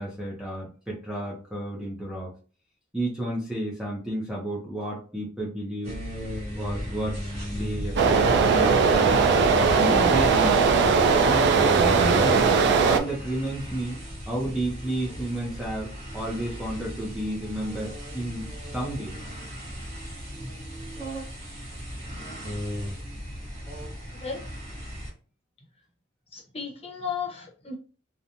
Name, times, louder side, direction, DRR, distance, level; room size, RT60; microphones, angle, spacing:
voice 1, 0.0-2.3 2.9-5.9 6.5-7.2 7.5-9.3 9.8-10.7 11.2-12.5 12.8-15.9 16.1-19.2, right 1 dB, 5° right, -4 dB, 0.6 m, -31 dB
sound 1, 5.8-25.1, equal, 35° right, 1.0 m, -36 dB
sound 2, 8.0-13.0, right 5 dB, 60° right, 0.3 m, -19 dB
voice 2, 26.3-27.7, left 6 dB, 30° left, -1 dB, 0.8 m, -34 dB
2.9 x 2.2 x 2.5 m, 0.38 s
head